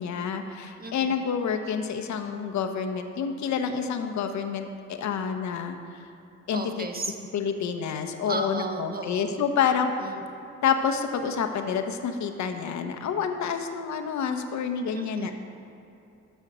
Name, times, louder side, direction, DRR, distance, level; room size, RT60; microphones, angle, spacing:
voice 1, 0.0-6.0 6.5-6.6 7.3-9.9 10.6-15.3, left 6 dB, 70° left, 6 dB, 1.0 m, -28 dB
voice 2, 0.8-1.2 6.5-7.1 8.2-9.3 10.0-10.2 14.9-15.3, right 2 dB, 30° right, 4 dB, 1.2 m, -34 dB
13.5 x 5.6 x 6.3 m, 2.8 s
cardioid pair, 90°, 30 cm